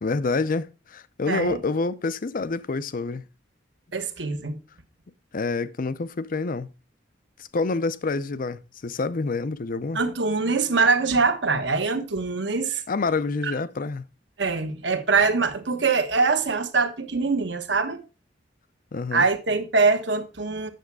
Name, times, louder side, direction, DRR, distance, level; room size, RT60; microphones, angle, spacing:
voice 1, 0.0-3.2 5.3-6.7 7.4-10.0 12.9-14.1 18.9-19.3, left 3 dB, 50° left, 0.6 m, -27 dB
voice 2, 1.3-1.6 3.9-4.6 9.9-12.8 13.4-13.5 14.4-18.0 19.1-20.7, right 4 dB, 70° right, 1.3 m, -23 dB
9.1 x 7.0 x 4.7 m
head